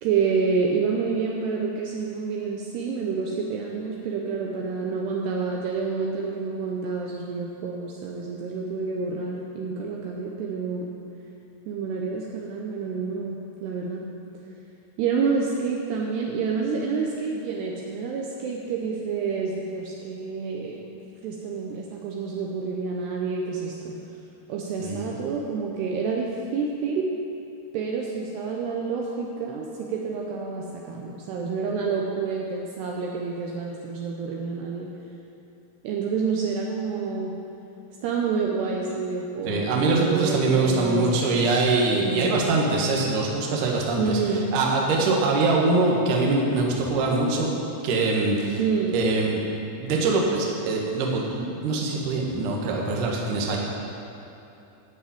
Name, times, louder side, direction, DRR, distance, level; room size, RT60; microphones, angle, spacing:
voice 1, 0.0-10.9 11.7-14.1 15.0-20.8 21.2-23.9 24.5-27.1 27.7-34.9 35.8-37.3 38.0-41.4 41.9-42.3 44.0-44.5 48.6-48.9, right 5 dB, 75° right, -1 dB, 2.7 m, -28 dB
voice 2, 24.8-25.1 39.4-44.2 44.5-47.5 47.8-48.6 48.9-49.4 49.8-53.6, right 3 dB, 60° right, -2 dB, 2.4 m, -23 dB
14.0 x 5.4 x 8.4 m, 2.8 s
omnidirectional pair, 5.1 m